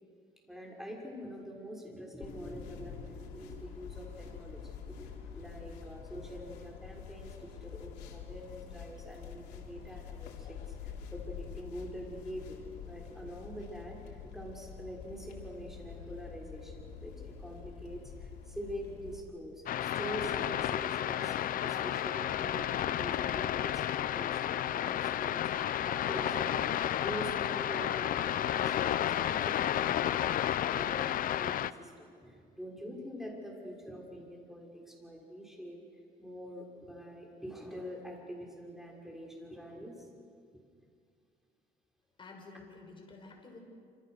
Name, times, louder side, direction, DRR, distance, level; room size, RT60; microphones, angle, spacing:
voice 1, 0.5-12.6 12.9-21.3 21.6-35.8 36.2-40.1 40.5-40.6, equal, ahead, -1 dB, 6.2 m, -45 dB
sound 1, 2.2-19.2, left 7 dB, 90° left, 3.5 m, -47 dB
sound 2, 19.7-31.7, left 11 dB, 55° left, 0.7 m, -32 dB
voice 2, 42.2-43.6, left 3 dB, 30° left, 1 dB, 6.3 m, -50 dB
27.0 x 27.0 x 6.7 m, 2.2 s
cardioid pair, 110°, 17 cm